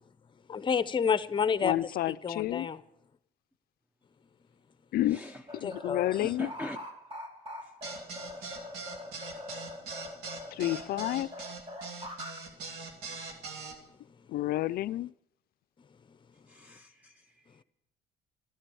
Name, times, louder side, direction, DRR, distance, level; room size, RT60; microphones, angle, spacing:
voice 1, 0.5-1.7 2.1-2.8 5.6-6.1, left 6 dB, 30° left, 0.8 m, -29 dB
voice 2, 1.6-2.7 4.9-5.2 5.5-6.5 10.5-11.3 14.3-15.1, left 15 dB, 65° left, 0.5 m, -30 dB
voice 3, 5.1-5.4 6.2-6.8 7.6-7.7 16.5-17.6, left 1 dB, 10° right, 0.8 m, -43 dB
sound 1, 5.5-12.4, left 1 dB, 30° right, 2.9 m, -43 dB
sound 2, 7.8-13.7, right 4 dB, 80° right, 2.7 m, -41 dB
13.5 x 13.0 x 7.0 m
cardioid pair, 110°, 17 cm